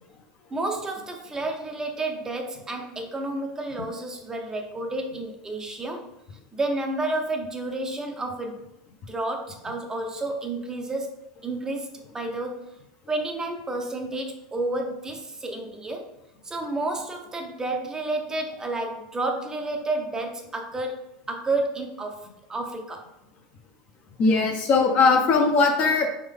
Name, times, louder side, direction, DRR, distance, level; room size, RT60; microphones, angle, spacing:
voice 1, 0.5-6.1 6.5-8.6 9.1-11.9 12.1-12.7 13.1-16.1 16.4-21.0 21.3-23.1, right 2 dB, 20° right, 3 dB, 0.7 m, -30 dB
voice 2, 24.2-26.1, left 4 dB, 45° left, 2 dB, 0.9 m, -19 dB
3.7 x 3.5 x 3.5 m, 0.82 s
hypercardioid pair, 95°, 3 cm